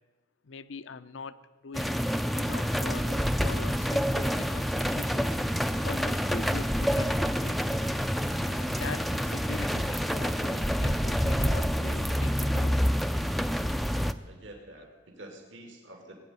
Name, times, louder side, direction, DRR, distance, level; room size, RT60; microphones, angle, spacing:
voice 1, 0.4-2.0 2.3-5.4 5.8-7.8 8.4-12.8, left 4 dB, 80° left, 14 dB, 0.7 m, -42 dB
sound 1, 1.7-14.1, equal, ahead, 0.4 m, -28 dB
voice 2, 14.2-16.1, right 1 dB, 70° right, 3 dB, 2.2 m, -47 dB
19.0 x 7.7 x 9.4 m, 1.3 s
head